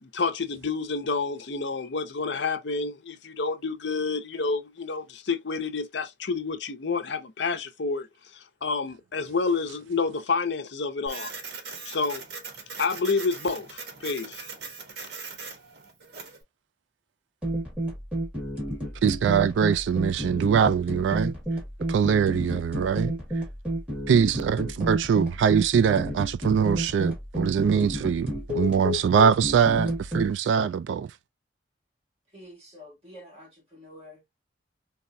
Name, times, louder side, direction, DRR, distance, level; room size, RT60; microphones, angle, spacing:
voice 1, 0.0-8.1 8.3-11.3 11.9-12.2 12.8-14.5, left 4 dB, 75° left, 0.7 m, -29 dB
Printer, 11.1-16.4, right 4 dB, 60° right, 1.0 m, -40 dB
sound 1, 17.4-30.3, equal, 5° right, 1.5 m, -31 dB
voice 2, 19.0-21.3 21.9-23.1 24.1-31.1, right 7 dB, 90° right, 0.3 m, -23 dB
voice 3, 32.3-34.4, left 1 dB, 35° right, 1.7 m, -48 dB
4.1 x 2.2 x 2.6 m
head